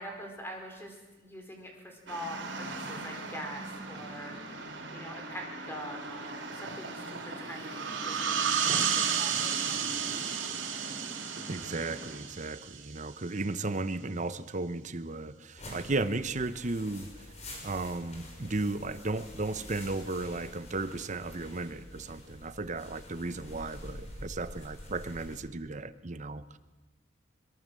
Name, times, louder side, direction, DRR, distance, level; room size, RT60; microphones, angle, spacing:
voice 1, 0.0-9.8, equal, 10° left, 3 dB, 4.6 m, -44 dB
sound 1, 2.1-12.2, right 2 dB, 65° right, 4.1 m, -41 dB
sound 2, 7.7-13.0, right 8 dB, 85° right, 2.1 m, -32 dB
voice 2, 11.5-17.1 17.6-26.6, right 2 dB, 40° right, 13 dB, 0.9 m, -35 dB
sound 3, 15.6-25.4, left 1 dB, 35° left, 5.6 m, -47 dB
22.0 x 22.0 x 7.7 m, 1.2 s
head